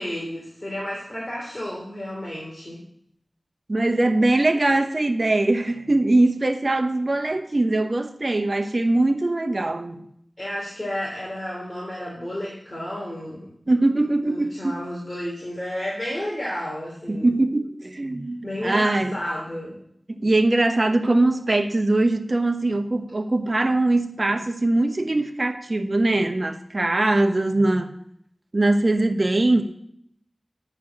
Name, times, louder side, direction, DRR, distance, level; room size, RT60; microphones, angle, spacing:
voice 1, 0.0-2.8 10.4-13.5 14.3-17.3 18.4-19.7 29.6-29.7, left 1 dB, 35° left, -4 dB, 3.1 m, -32 dB
voice 2, 3.7-10.1 13.7-14.7 17.1-19.2 20.1-27.9 28.5-29.6, right 2 dB, 50° right, 6 dB, 1.0 m, -21 dB
9.9 x 4.6 x 7.5 m, 0.69 s
wide cardioid pair, 45°, 0 cm